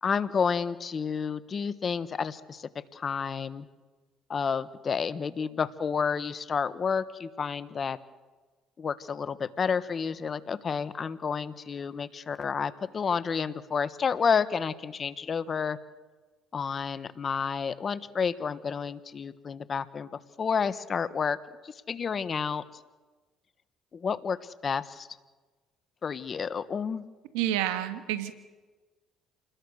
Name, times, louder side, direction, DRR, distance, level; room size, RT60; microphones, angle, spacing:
voice 1, 0.0-3.7 4.3-8.0 8.8-15.8 16.5-20.1 20.4-21.4 21.6-22.6 23.9-25.1 26.0-27.0, left 6 dB, 40° left, 14 dB, 1.3 m, -30 dB
voice 2, 27.3-28.3, right 12 dB, 90° right, 10 dB, 1.7 m, -29 dB
28.0 x 20.5 x 6.6 m, 1.3 s
supercardioid pair, 75°, 0 cm